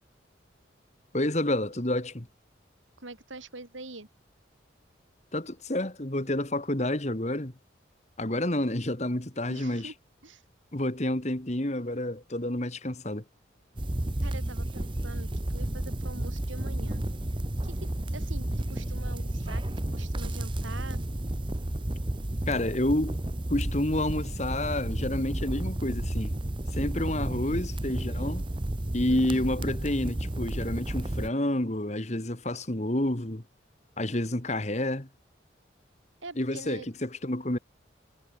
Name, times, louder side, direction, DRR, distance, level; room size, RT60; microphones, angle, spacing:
voice 1, 1.1-2.3 5.3-7.5 8.2-9.9 10.7-13.2 22.5-23.2 23.5-26.3 26.7-28.5 28.9-33.4 34.0-35.1 36.4-37.6, left 1 dB, 35° left, 1.9 m, -29 dB
voice 2, 3.0-4.1 8.3-8.4 9.5-9.9 10.2-10.4 14.2-17.1 17.6-19.6 19.9-21.0 29.1-29.5 36.2-36.9, right 2 dB, 90° right, 4.8 m, -44 dB
sound 1, 13.8-31.3, right 1 dB, 25° right, 1.0 m, -32 dB
head